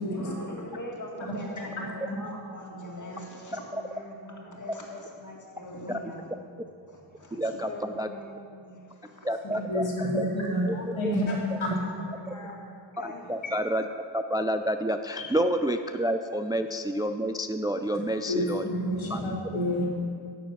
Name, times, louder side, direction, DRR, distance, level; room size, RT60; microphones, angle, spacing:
voice 1, 0.0-6.6 6.9-9.6 10.6-12.7 12.9-13.2 17.8-18.0, left 1 dB, 40° left, -1 dB, 2.1 m, -42 dB
voice 2, 7.4-7.7 8.0-8.1 9.2-9.8 10.2-10.3 10.6-10.7 11.0-11.1 13.0-13.9 14.1-18.6 19.1-19.3, right 1 dB, 10° right, 7 dB, 0.4 m, -29 dB
voice 3, 9.6-11.3 11.6-11.8 15.2-15.3 18.3-19.9, equal, 80° left, -4 dB, 2.7 m, -29 dB
12.0 x 7.2 x 5.9 m, 2.3 s
wide cardioid pair, 70°, 47 cm